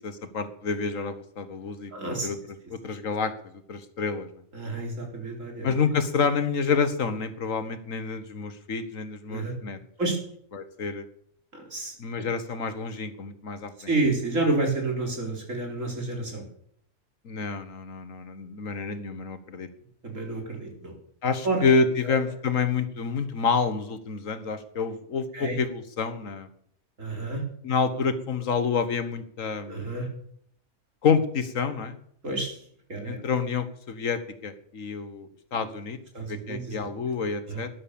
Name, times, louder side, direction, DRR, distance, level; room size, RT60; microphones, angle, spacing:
voice 1, 0.0-1.9 2.2-2.4 2.7-3.3 3.7-4.3 5.6-9.8 10.5-11.0 12.0-13.7 17.3-19.7 21.2-26.5 27.6-29.9 31.0-32.0 33.0-36.0 36.3-37.7, left 5 dB, 75° left, 10 dB, 1.8 m, -28 dB
voice 2, 1.9-2.3 4.5-5.7 9.3-9.5 10.0-10.2 11.5-11.9 13.9-16.4 20.0-20.9 21.4-21.6 25.3-25.6 27.0-27.4 29.7-30.1 32.2-32.6 32.9-33.2 35.5-35.6 36.1-36.8 37.5-37.6, right 2 dB, 75° right, 1 dB, 4.7 m, -29 dB
13.0 x 11.0 x 7.0 m, 0.65 s
omnidirectional pair, 1.4 m